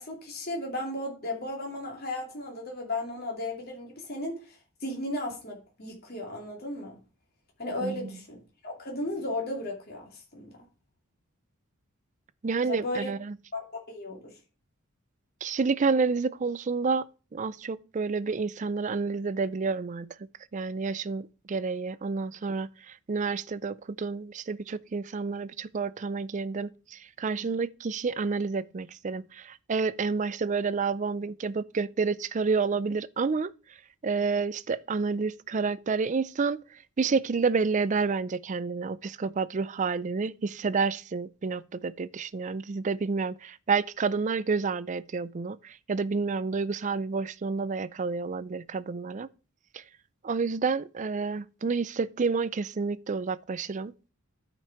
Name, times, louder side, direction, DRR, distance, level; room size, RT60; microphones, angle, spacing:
voice 1, 0.0-4.6 4.8-7.0 7.6-10.5 12.6-13.1 13.5-14.3, left 1 dB, 45° left, 2.6 m, -35 dB
voice 2, 7.8-8.2 12.4-13.3 15.4-17.0 17.3-20.1 20.5-33.5 34.0-36.6 37.0-49.3 49.7-49.8 50.2-53.9, right 4 dB, 35° right, 0.4 m, -29 dB
12.5 x 5.3 x 4.6 m
head